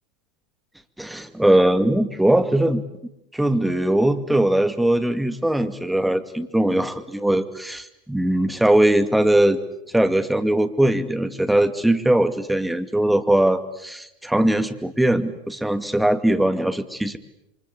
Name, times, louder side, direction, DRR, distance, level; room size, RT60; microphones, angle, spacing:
voice 1, 1.0-2.8 3.3-9.6 9.9-17.2, right 1 dB, 5° right, 8 dB, 2.3 m, -20 dB
28.5 x 25.0 x 8.4 m, 0.86 s
figure-of-eight pair, 85°, 0 cm